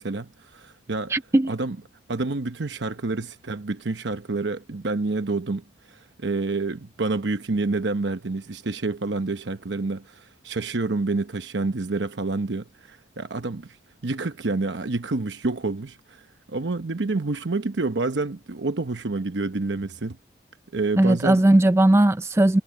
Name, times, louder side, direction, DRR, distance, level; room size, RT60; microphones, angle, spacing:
voice 1, 0.0-1.1 1.5-1.8 2.1-13.7 14.0-16.2 16.5-20.2 20.7-21.4, right 3 dB, 80° right, 0.9 m, -28 dB
voice 2, 1.1-1.5 21.0-22.6, right 1 dB, 15° right, 0.4 m, -18 dB
head